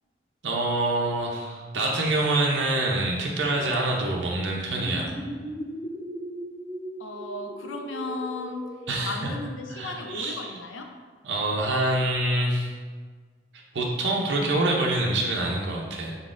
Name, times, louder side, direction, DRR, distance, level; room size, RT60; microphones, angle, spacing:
voice 1, 0.4-5.1 8.9-9.3 9.7-10.5 11.2-12.7 13.7-16.2, right 2 dB, 65° right, -2 dB, 0.6 m, -26 dB
sound 1, 4.6-9.9, equal, 5° right, 0.5 m, -38 dB
voice 2, 7.0-11.0, left 2 dB, 85° left, 4 dB, 0.5 m, -35 dB
3.9 x 3.8 x 2.5 m, 1.5 s
head